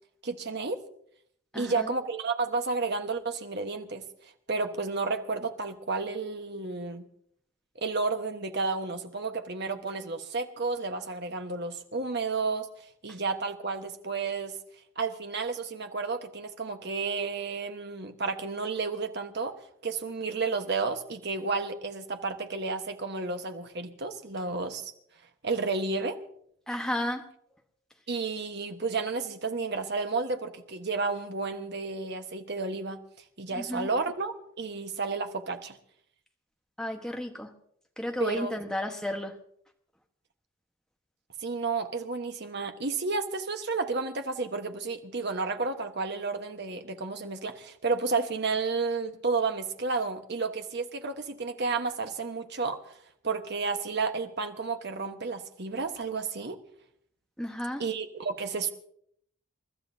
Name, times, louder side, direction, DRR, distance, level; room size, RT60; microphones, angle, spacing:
voice 1, 0.2-0.8 1.5-4.0 4.5-7.0 7.7-12.7 13.0-14.6 15.0-19.5 19.8-24.9 25.4-26.2 28.1-33.0 33.4-35.8 38.2-38.5 41.4-52.8 53.2-56.6 57.8-58.7, right 4 dB, 55° right, 6 dB, 1.3 m, -31 dB
voice 2, 1.5-1.9 26.7-27.2 33.5-33.9 36.8-37.5 38.0-39.3 57.4-57.8, left 1 dB, 5° left, 3 dB, 1.3 m, -33 dB
28.5 x 13.0 x 2.8 m, 0.67 s
head